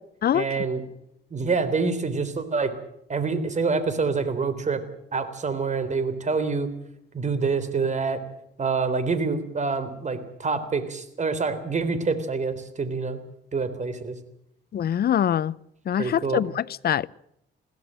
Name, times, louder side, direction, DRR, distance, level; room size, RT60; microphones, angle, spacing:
voice 1, 0.3-0.8 1.3-2.7 3.1-4.8 5.1-6.7 7.1-8.2 8.6-13.2 13.5-14.2 16.0-16.4, right 4 dB, 35° right, 3.6 m, -26 dB
voice 2, 14.7-15.6 15.9-17.1, left 10 dB, 50° left, 0.7 m, -24 dB
22.0 x 16.0 x 7.6 m
cardioid pair, 90°, 20 cm